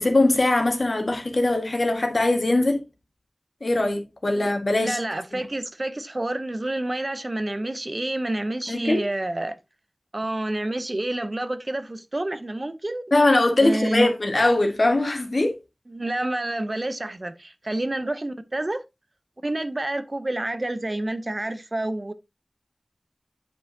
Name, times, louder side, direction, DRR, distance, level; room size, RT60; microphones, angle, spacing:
voice 1, 0.0-2.8 3.6-5.0 5.3-5.5 8.7-9.0 13.1-15.6, left 2 dB, 65° left, 1.6 m, -21 dB
voice 2, 4.8-9.5 10.1-13.0 13.6-14.1 15.9-18.8 19.4-22.1, right 1 dB, 45° right, 0.7 m, -28 dB
8.9 x 5.5 x 2.8 m
wide cardioid pair, 60°, 0 cm